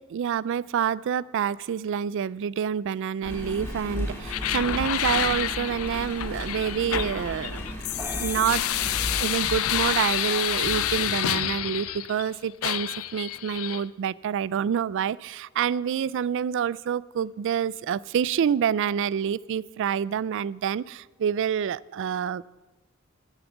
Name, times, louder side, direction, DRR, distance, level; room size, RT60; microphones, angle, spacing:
voice 1, 0.0-7.6 8.2-8.6 9.2-22.4, right 8 dB, 60° right, 22 dB, 0.3 m, -27 dB
Engine, 3.2-11.1 11.7-11.8, equal, 10° left, 3.2 m, -35 dB
Glass riot mixdown Fresnd ud, 4.3-12.3 12.6-13.8, left 12 dB, 80° left, 0.5 m, -29 dB
sound 1, 8.0-10.5, right 2 dB, 10° right, 0.6 m, -44 dB
11.5 x 9.6 x 7.2 m, 1.2 s
head